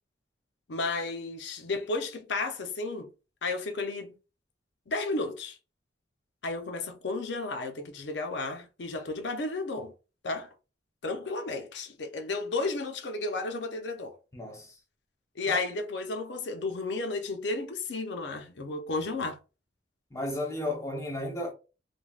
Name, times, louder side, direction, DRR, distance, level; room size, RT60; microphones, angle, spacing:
voice 1, 0.7-3.1 3.4-4.2 4.9-5.6 6.4-9.9 10.2-10.5 11.0-14.2 15.4-19.4, left 3 dB, 70° left, 0.6 m, -33 dB
voice 2, 14.3-14.7 15.5-15.6 20.1-21.5, left 1 dB, 15° left, 0.8 m, -34 dB
3.3 x 2.2 x 2.3 m
head